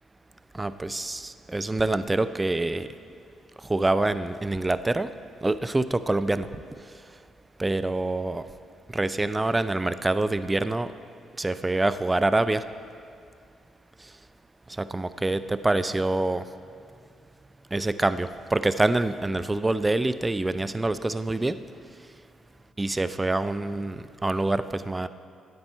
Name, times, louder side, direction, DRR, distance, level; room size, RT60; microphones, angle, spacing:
voice 1, 0.5-2.9 3.6-5.1 5.4-6.5 7.6-8.4 8.9-10.9 11.4-12.6 14.8-16.4 17.7-21.6 22.8-25.1, right 2 dB, 15° right, 13 dB, 0.4 m, -26 dB
14.5 x 9.7 x 4.5 m, 2.3 s
cardioid pair, 90°, 0 cm